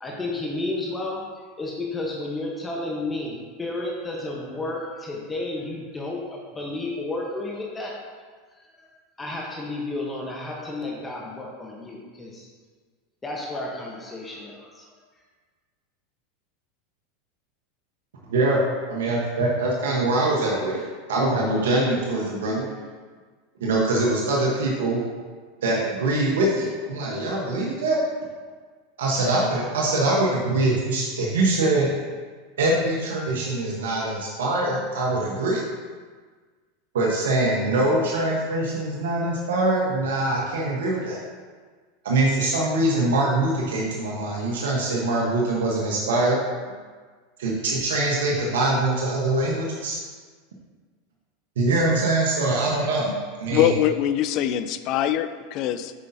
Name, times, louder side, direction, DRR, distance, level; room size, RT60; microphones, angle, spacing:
voice 1, 0.0-1.2 1.6-8.0 8.5-8.9 9.2-12.5 13.2-14.9, left 2 dB, 15° left, -2 dB, 1.1 m, -32 dB
voice 2, 18.3-18.6 18.9-20.8 21.1-22.7 23.6-25.0 25.6-28.0 29.0-31.9 32.6-35.6 36.9-41.2 42.0-46.4 47.4-50.0 51.6-53.1 53.4-53.7, right 2 dB, 85° right, -3 dB, 1.1 m, -23 dB
voice 3, 53.5-55.9, left 11 dB, 50° left, 11 dB, 0.4 m, -23 dB
8.0 x 5.3 x 2.8 m, 1.5 s
hypercardioid pair, 110°, 0 cm